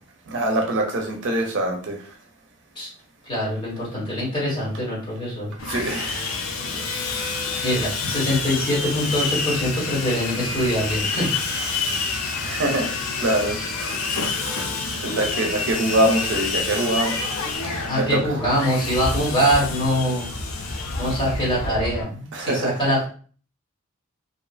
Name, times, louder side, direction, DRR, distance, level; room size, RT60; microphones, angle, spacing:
voice 1, 0.3-2.0 5.7-6.3 12.4-13.6 15.0-17.2 17.7-18.2 22.3-22.8, right 1 dB, 60° right, 2 dB, 0.6 m, -24 dB
voice 2, 3.2-5.5 7.6-11.3 17.9-20.3 21.0-23.1, equal, 25° left, -6 dB, 1.3 m, -23 dB
Sawing, 5.6-22.0, left 4 dB, 70° left, 0.5 m, -28 dB
2.6 x 2.3 x 2.3 m, 0.42 s
head